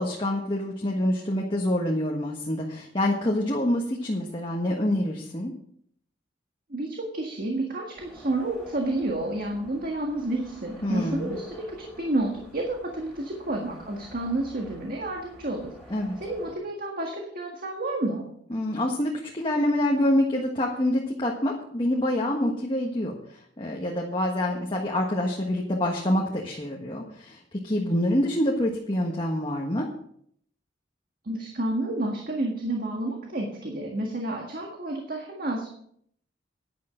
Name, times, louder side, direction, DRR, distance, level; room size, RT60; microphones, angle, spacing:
voice 1, 0.0-5.5 10.8-11.4 15.9-16.2 18.5-29.9, left 1 dB, 25° left, -1 dB, 1.4 m, -26 dB
voice 2, 6.7-15.7 16.2-18.2 31.2-35.7, right 1 dB, 50° right, 1 dB, 1.7 m, -30 dB
sound 1, 7.9-16.5, equal, ahead, 6.1 m, -49 dB
10.5 x 10.5 x 5.2 m, 0.66 s
head